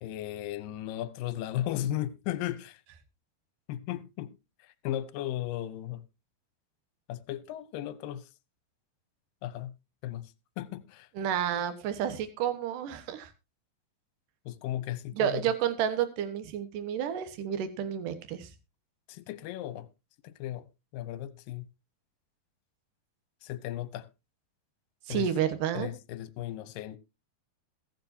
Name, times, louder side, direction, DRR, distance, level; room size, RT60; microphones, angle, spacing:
voice 1, 0.0-2.8 3.7-4.3 4.6-6.0 7.1-8.3 9.4-9.7 10.0-11.1 14.5-15.5 19.1-19.9 20.2-21.7 23.4-24.1 25.1-25.3 25.7-27.0, left 13 dB, 75° left, 2.4 m, -36 dB
voice 2, 11.2-13.3 15.2-18.5 25.1-25.9, right 9 dB, 70° right, 2.7 m, -30 dB
21.5 x 7.5 x 2.7 m
omnidirectional pair, 4.2 m